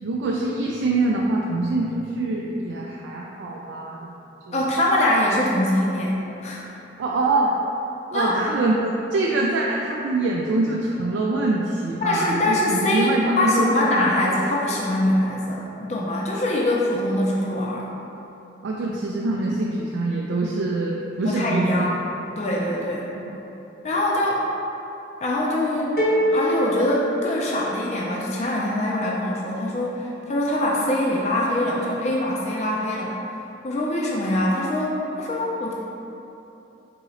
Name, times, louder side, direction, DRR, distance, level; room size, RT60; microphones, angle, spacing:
voice 1, 0.0-4.1 4.5-4.6 7.0-7.6 8.1-13.7 14.0-14.1 18.6-21.9 23.3-23.4, right 2 dB, 90° right, -3 dB, 0.3 m, -24 dB
voice 2, 4.5-6.6 8.1-8.4 12.0-17.9 21.2-22.0 22.4-23.1 23.8-24.5 25.2-33.2 33.6-35.7, left 1 dB, 35° left, -3 dB, 0.4 m, -23 dB
sound 1, 26.0-28.0, equal, 50° left, 0.8 m, -24 dB
3.8 x 3.6 x 3.1 m, 2.9 s
head